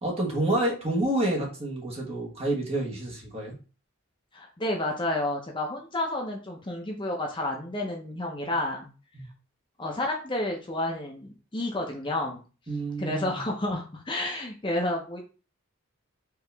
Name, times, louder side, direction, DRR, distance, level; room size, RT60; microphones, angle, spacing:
voice 1, 0.0-3.5 9.1-9.3 12.7-13.4, right 1 dB, 30° right, -2 dB, 1.4 m, -28 dB
voice 2, 4.3-8.9 9.8-12.4 13.0-15.2, left 1 dB, 25° left, 0 dB, 0.6 m, -30 dB
4.7 x 3.0 x 3.4 m, 0.35 s
head